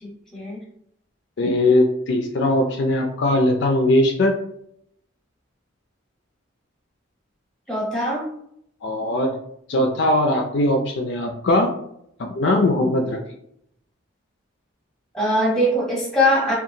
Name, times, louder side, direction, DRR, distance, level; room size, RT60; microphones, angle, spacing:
voice 1, 0.0-0.6 7.7-8.2 15.1-16.5, equal, 5° left, -4 dB, 0.8 m, -21 dB
voice 2, 1.4-4.3 8.8-9.3 9.7-11.7 12.4-13.2, left 1 dB, 55° left, 3 dB, 0.3 m, -20 dB
2.8 x 2.4 x 2.6 m, 0.72 s
head